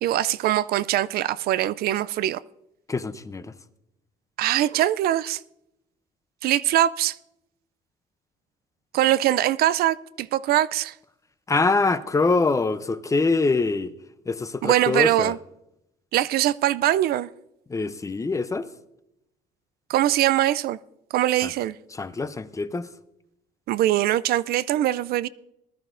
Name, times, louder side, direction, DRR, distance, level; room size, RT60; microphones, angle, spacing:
voice 1, 0.0-2.4 4.4-5.4 6.4-7.2 8.9-10.9 14.6-15.4 16.1-17.3 19.9-20.8 21.1-21.7 23.7-25.3, right 13 dB, 65° right, 0.4 m, -22 dB
voice 2, 2.9-3.5 11.5-13.9 14.3-15.3 17.7-18.7 21.4-21.5 21.9-22.9, left 3 dB, 20° left, 0.6 m, -24 dB
20.0 x 12.0 x 2.5 m
cardioid pair, 110°, 17 cm